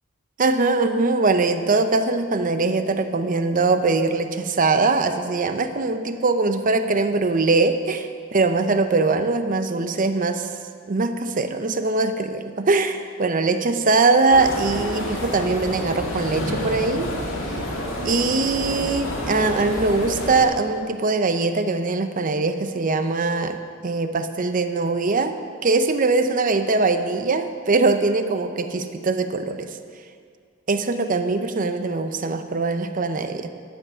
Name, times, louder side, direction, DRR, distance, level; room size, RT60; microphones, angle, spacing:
voice 1, 0.4-10.5 10.9-17.1 18.0-25.4 25.6-29.8 30.7-33.5, right 3 dB, 45° right, 9 dB, 0.6 m, -22 dB
sound 1, 14.3-20.4, left 1 dB, 90° left, 2.1 m, -29 dB
11.0 x 8.1 x 6.2 m, 2.1 s
head